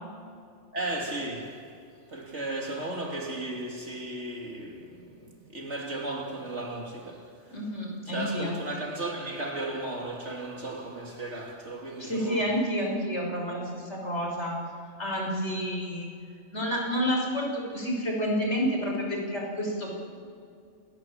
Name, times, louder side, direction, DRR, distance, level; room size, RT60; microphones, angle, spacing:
voice 1, 0.7-1.8 2.1-7.6 8.1-12.6, right 2 dB, 60° right, 3.4 m, -35 dB
voice 2, 7.5-8.5 12.0-14.6 15.0-16.1 16.5-20.0, equal, 60° left, 6.3 m, -29 dB
28.0 x 20.5 x 7.4 m
omnidirectional pair, 1.3 m